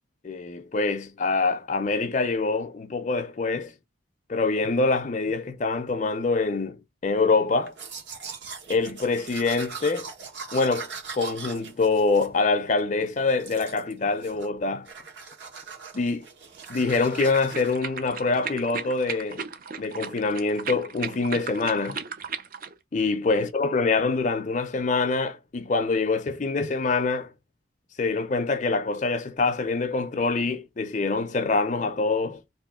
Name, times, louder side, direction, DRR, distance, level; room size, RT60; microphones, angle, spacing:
voice 1, 0.2-3.7 4.3-7.7 8.7-10.1 10.5-14.9 15.9-16.3 16.7-19.5 19.8-22.0 22.9-27.3 28.0-32.4, left 3 dB, 40° left, 0.5 m, -25 dB
Domestic sounds home sounds, 7.7-12.9 13.3-13.9 14.2-14.6 14.8-17.7, right 5 dB, 75° right, 1.5 m, -41 dB
sound 1, 16.5-22.7, right 6 dB, 50° right, 0.5 m, -36 dB
3.1 x 3.0 x 3.5 m
head